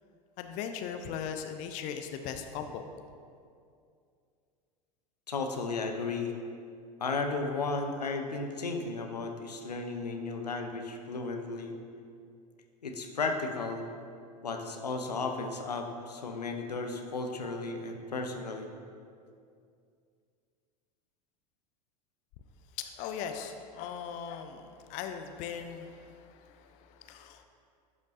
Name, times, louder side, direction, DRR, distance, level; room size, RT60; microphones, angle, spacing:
voice 1, 0.4-2.9 22.8-27.4, left 7 dB, 40° left, 7 dB, 0.4 m, -39 dB
voice 2, 5.3-6.3 7.0-11.7 12.8-13.9 14.4-18.7, left 3 dB, 80° left, 4 dB, 0.7 m, -34 dB
11.0 x 5.2 x 2.6 m, 2.3 s
figure-of-eight pair, 85°, 20 cm